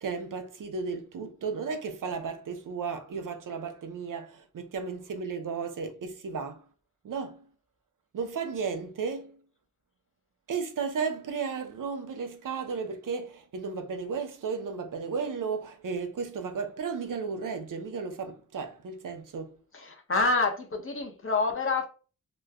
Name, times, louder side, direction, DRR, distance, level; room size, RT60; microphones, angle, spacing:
voice 1, 0.0-6.6 7.0-7.4 8.1-9.4 10.5-19.6, right 5 dB, 75° right, 0.7 m, -34 dB
voice 2, 19.7-21.9, left 3 dB, 40° left, 0.9 m, -27 dB
3.0 x 2.2 x 3.5 m
cardioid pair, 65°, 32 cm